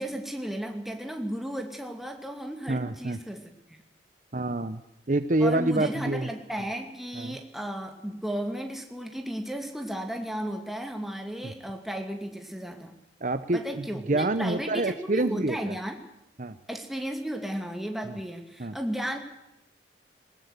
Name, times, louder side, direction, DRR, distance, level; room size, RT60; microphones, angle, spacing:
voice 1, 0.0-3.8 5.4-12.9 13.5-16.0 16.7-19.2, right 1 dB, ahead, 4 dB, 2.5 m, -34 dB
voice 2, 2.7-3.2 4.3-4.8 5.1-6.3 7.2-7.4 11.4-11.5 13.2-15.8 16.4-16.6 18.1-18.2 18.6-18.8, right 2 dB, 45° right, 12 dB, 0.9 m, -27 dB
20.0 x 18.5 x 8.2 m, 0.86 s
head